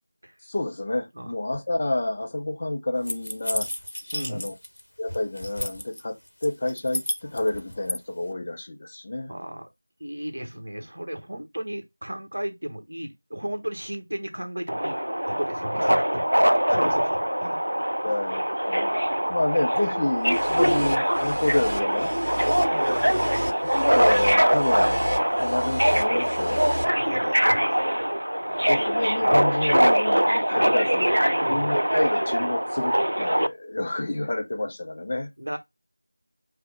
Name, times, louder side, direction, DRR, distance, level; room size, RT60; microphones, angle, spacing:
voice 1, 0.4-3.7 4.3-4.5 5.0-9.3 16.7-16.9 18.0-19.0 19.3-22.4 23.6-26.7 28.7-31.1 31.5-35.3, left 2 dB, 20° left, 0.4 m, -29 dB
sound 1, 3.1-4.8 5.1-6.0 6.4-8.0, left 1 dB, 55° left, 0.7 m, -31 dB
voice 2, 4.1-4.5 9.3-9.7 10.0-15.0 15.3-17.9 20.6-20.8 22.5-23.4 26.8-27.8 28.4-28.8 29.3-29.4 31.3-31.7 35.4-35.6, right 1 dB, 50° right, 1.2 m, -35 dB
Subway metro underground, 14.7-33.5, equal, 85° right, 0.3 m, -23 dB
sound 2, 20.2-26.8, equal, 65° right, 0.9 m, -34 dB
5.0 x 2.0 x 4.7 m
figure-of-eight pair, 175°, 0 cm